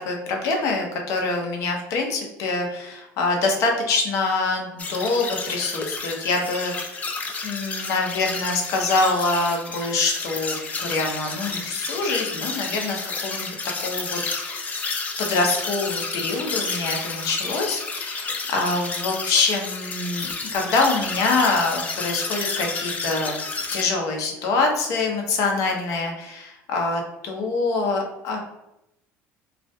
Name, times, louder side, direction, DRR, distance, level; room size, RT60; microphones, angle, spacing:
voice 1, 0.1-6.7 7.4-13.5 13.8-14.9 15.2-23.3 23.7-28.4, left 3 dB, 65° left, 1 dB, 0.6 m, -25 dB
sound 1, 4.8-23.8, left 4 dB, 25° left, 0.4 m, -31 dB
2.4 x 2.2 x 2.6 m, 0.86 s
supercardioid pair, 105°, 6 cm